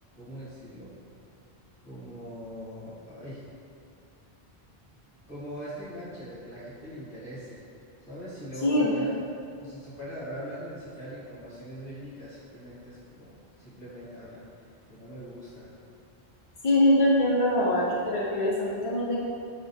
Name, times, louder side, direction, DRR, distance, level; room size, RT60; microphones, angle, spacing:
voice 1, 0.2-0.9 1.8-3.5 5.3-7.6 8.1-14.4 14.9-15.7, equal, 30° left, -11 dB, 1.2 m, -41 dB
voice 2, 8.6-8.9 16.6-19.2, left 1 dB, 50° left, -5 dB, 0.4 m, -23 dB
4.8 x 3.4 x 2.7 m, 2.4 s
omnidirectional pair, 1.0 m